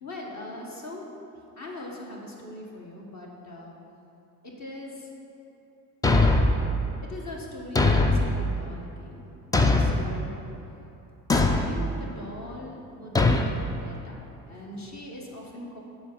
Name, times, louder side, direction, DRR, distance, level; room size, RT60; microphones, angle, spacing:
voice 1, 0.0-1.1 1.6-3.7 4.4-5.1 7.1-9.2 9.8-10.3 11.5-14.2 14.5-15.8, left 1 dB, 35° left, -2 dB, 1.3 m, -40 dB
Thump thud, 6.0-6.7 7.8-8.3 9.5-10.1 11.3-11.7 13.2-13.5, left 2 dB, 10° left, 0.3 m, -20 dB
7.1 x 4.4 x 5.3 m, 2.9 s
hypercardioid pair, 50°, 47 cm